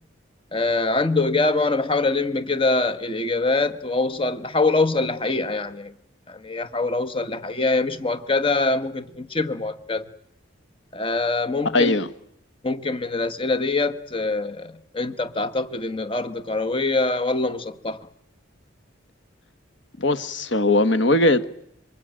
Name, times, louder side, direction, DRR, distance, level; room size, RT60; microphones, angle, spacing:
voice 1, 0.5-5.9 6.3-10.1 10.9-11.9 12.6-18.1, left 3 dB, 25° left, 1.5 m, -24 dB
voice 2, 11.7-12.1 20.0-21.5, left 2 dB, 65° left, 1.5 m, -19 dB
27.0 x 24.0 x 9.0 m
head